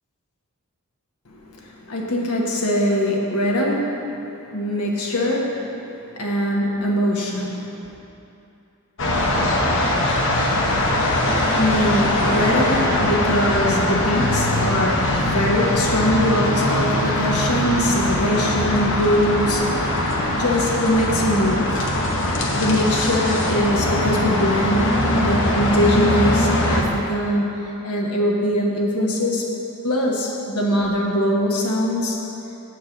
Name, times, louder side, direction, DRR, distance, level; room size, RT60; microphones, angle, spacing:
voice 1, 1.9-3.9 4.5-5.6 6.1-7.7 11.4-19.8 20.0-21.9 22.6-27.5 27.8-29.5 29.8-32.2, equal, 85° left, -2 dB, 1.3 m, -22 dB
sound 1, 9.0-26.8, left 1 dB, 60° left, 0.9 m, -21 dB
8.2 x 4.5 x 6.4 m, 2.9 s
head